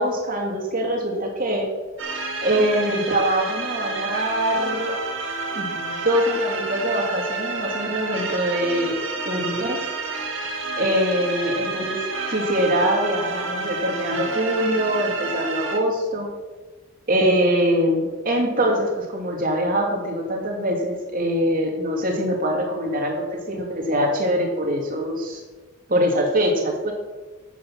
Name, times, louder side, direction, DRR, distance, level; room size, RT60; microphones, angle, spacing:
voice 1, 0.0-1.7 2.4-5.0 5.5-9.0 9.2-9.8 10.8-12.0 12.3-16.3 17.1-25.4 25.9-26.9, equal, 45° right, 1 dB, 2.6 m, -23 dB
sound 1, 2.0-15.8, right 3 dB, 70° right, 1.8 m, -29 dB
9.8 x 9.1 x 6.1 m, 1.3 s
head